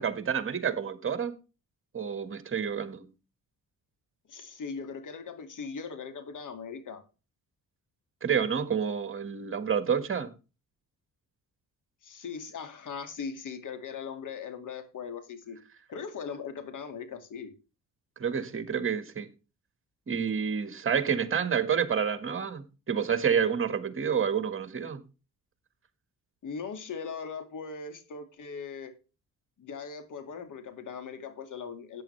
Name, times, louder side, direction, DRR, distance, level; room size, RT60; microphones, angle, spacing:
voice 1, 0.0-1.3 1.9-3.1 8.2-10.3 18.2-19.3 20.1-25.0, right 7 dB, 35° right, 1.7 m, -29 dB
voice 2, 4.3-7.0 12.0-15.6 15.9-17.5 26.4-28.9 29.6-32.0, left 5 dB, 60° left, 2.3 m, -39 dB
13.5 x 9.2 x 3.3 m
cardioid pair, 105°, 35 cm